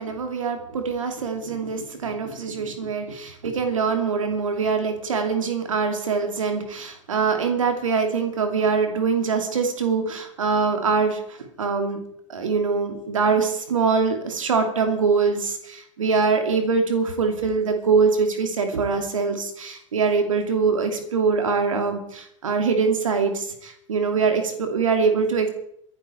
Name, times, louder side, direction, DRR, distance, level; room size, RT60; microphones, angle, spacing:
voice 1, 0.0-12.0 12.3-25.5, right 5 dB, 85° right, 5 dB, 2.6 m, -23 dB
24.5 x 10.5 x 4.5 m, 0.71 s
hypercardioid pair, 95°, 17 cm